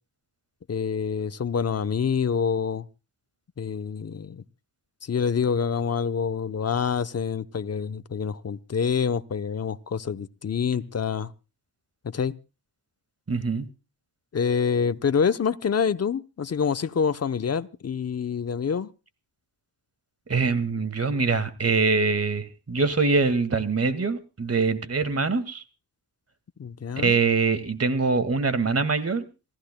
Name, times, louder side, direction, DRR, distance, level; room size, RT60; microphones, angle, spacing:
voice 1, 0.7-2.9 3.6-4.4 5.0-11.3 12.0-12.3 14.3-18.9 26.6-27.2, left 6 dB, 35° left, 0.8 m, -26 dB
voice 2, 13.3-13.7 20.3-25.6 27.0-29.2, right 4 dB, 35° right, 2.0 m, -24 dB
27.0 x 15.5 x 2.2 m
cardioid pair, 90°, 43 cm